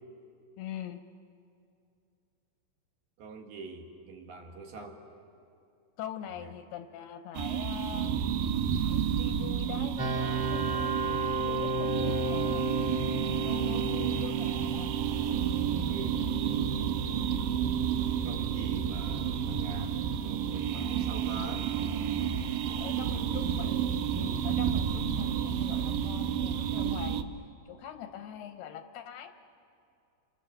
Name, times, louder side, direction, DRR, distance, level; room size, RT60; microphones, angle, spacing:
voice 1, 0.6-1.0 6.0-8.2 8.8-12.7 13.4-14.9 22.8-29.3, left 10 dB, 80° left, 7 dB, 2.6 m, -43 dB
voice 2, 3.2-5.0 15.9-16.3 18.2-21.7 22.7-23.3, right 3 dB, 65° right, 2 dB, 3.4 m, -44 dB
sound 1, 7.3-27.2, right 9 dB, 85° right, 2.0 m, -31 dB
sound 2, 10.0-22.8, right 3 dB, 40° right, 2.6 m, -36 dB
27.5 x 27.5 x 6.8 m, 2.5 s
omnidirectional pair, 5.0 m